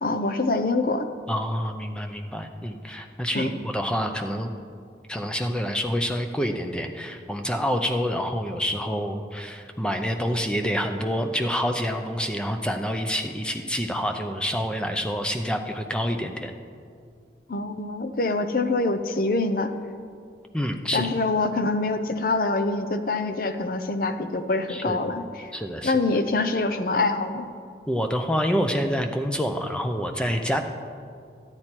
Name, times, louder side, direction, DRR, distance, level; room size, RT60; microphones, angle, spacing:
voice 1, 0.0-1.1 3.3-3.6 17.5-19.7 20.9-25.5 25.8-27.5, left 3 dB, 50° left, 9 dB, 0.6 m, -25 dB
voice 2, 1.3-4.5 5.1-16.5 20.5-21.1 24.7-25.0 25.5-25.9 27.9-30.6, equal, 5° left, 5 dB, 0.6 m, -27 dB
12.5 x 9.7 x 4.4 m, 2.2 s
head